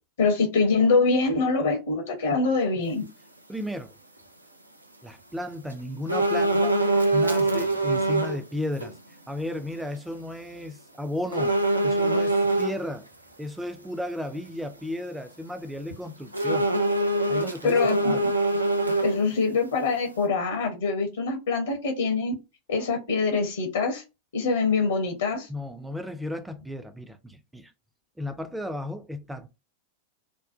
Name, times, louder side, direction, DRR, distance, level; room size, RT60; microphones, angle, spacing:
voice 1, 0.2-3.0 17.6-18.2 19.0-22.3 22.7-24.0 24.3-25.5, left 4 dB, 65° left, 0.6 m, -24 dB
voice 2, 3.5-3.9 5.0-6.8 7.1-9.0 9.3-13.1 13.4-16.8 17.3-18.2 25.5-27.7 28.2-29.5, left 1 dB, 5° right, 0.4 m, -34 dB
sound 1, 6.1-8.4 8.8-8.9 11.3-12.8 16.3-19.4 19.8-19.9, right 2 dB, 85° right, 0.4 m, -23 dB
2.5 x 2.1 x 2.5 m
figure-of-eight pair, 90°, 0 cm